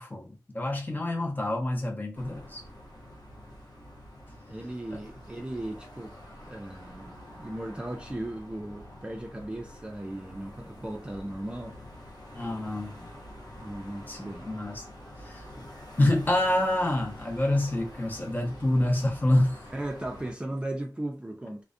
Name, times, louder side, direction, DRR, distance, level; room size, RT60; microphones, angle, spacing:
voice 1, 0.0-2.6 4.9-5.0 12.3-13.1 14.1-14.9 15.2-15.7 16.0-19.7, left 1 dB, 25° left, 0.6 m, -27 dB
sound 1, 2.1-20.3, left 1 dB, 85° left, 0.6 m, -47 dB
voice 2, 4.5-6.1 6.5-11.8 13.6-14.5 19.7-21.6, right 1 dB, 15° right, 0.4 m, -37 dB
2.4 x 2.1 x 2.4 m
cardioid pair, 50°, 7 cm